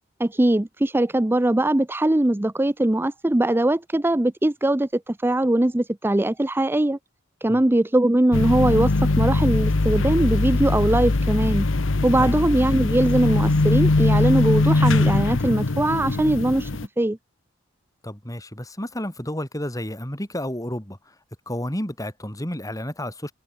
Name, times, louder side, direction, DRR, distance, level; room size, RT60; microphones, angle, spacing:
voice 1, 0.2-7.0 7.4-11.7 12.0-16.7 17.0-17.2, right 1 dB, 10° right, 0.5 m, -21 dB
sound 1, 8.3-16.9, left 2 dB, 75° left, 1.0 m, -21 dB
voice 2, 18.0-21.1 21.5-23.3, left 1 dB, 15° left, 5.3 m, -31 dB
head